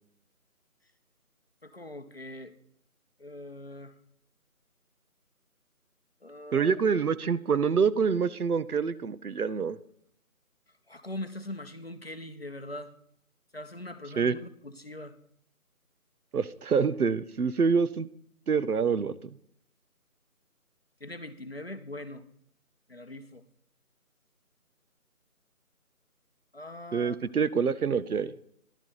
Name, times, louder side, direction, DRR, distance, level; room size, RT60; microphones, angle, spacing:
voice 1, 1.6-2.5 3.2-3.9 6.2-6.8 10.9-12.9 13.5-15.2 21.0-22.2 22.9-23.4 26.5-27.2, left 1 dB, 45° left, 10 dB, 0.7 m, -41 dB
voice 2, 6.5-9.8 14.2-14.3 16.3-18.1 18.5-19.1 26.9-28.3, right 6 dB, 80° right, 16 dB, 0.8 m, -26 dB
11.0 x 8.4 x 3.9 m, 0.68 s
figure-of-eight pair, 175°, 44 cm